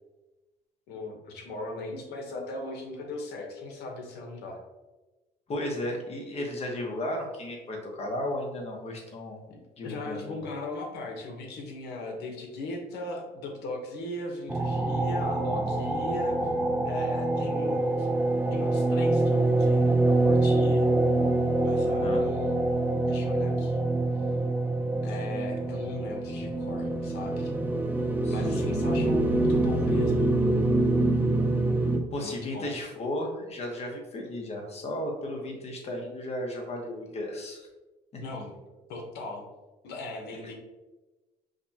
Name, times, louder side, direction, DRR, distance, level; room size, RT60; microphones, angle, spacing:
voice 1, 0.9-4.6 9.5-16.4 16.8-18.1 18.5-20.9 21.6-22.6 23.1-23.8 25.0-27.5 28.3-30.3 32.2-32.7 38.2-38.6 38.9-39.4 39.8-40.5, left 2 dB, 75° left, 1 dB, 0.9 m, -38 dB
voice 2, 5.5-9.4 9.8-10.4 21.8-22.2 28.2-28.7 32.1-37.7 38.1-38.2 40.3-40.4, left 1 dB, 40° left, 0 dB, 0.9 m, -34 dB
sound 1, 14.5-32.0, right 2 dB, 10° right, 0.4 m, -25 dB
5.0 x 2.2 x 2.8 m, 1.1 s
cardioid pair, 110°, 17 cm